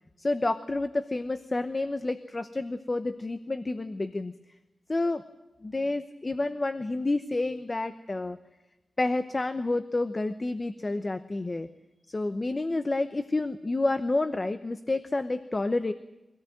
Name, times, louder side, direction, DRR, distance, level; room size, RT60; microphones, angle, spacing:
voice 1, 0.2-4.3 4.9-5.2 5.6-8.4 9.0-11.7 12.1-15.9, left 2 dB, 25° left, 10 dB, 0.9 m, -29 dB
24.5 x 17.5 x 9.1 m, 1.0 s
wide cardioid pair, 165°, 0 cm